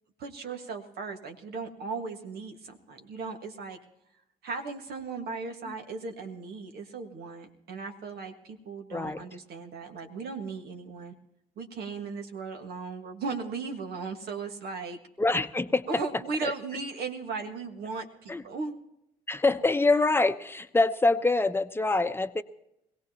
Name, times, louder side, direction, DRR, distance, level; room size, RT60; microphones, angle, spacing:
voice 1, 0.2-3.8 4.4-11.1 11.6-15.0 15.9-18.7, right 4 dB, 65° right, 4 dB, 1.7 m, -37 dB
voice 2, 8.9-9.2 15.2-16.0 16.4-16.5 18.3-18.4 19.3-22.4, left 3 dB, 10° left, 9 dB, 0.9 m, -25 dB
21.5 x 17.0 x 2.9 m, 0.83 s
hypercardioid pair, 55°, 18 cm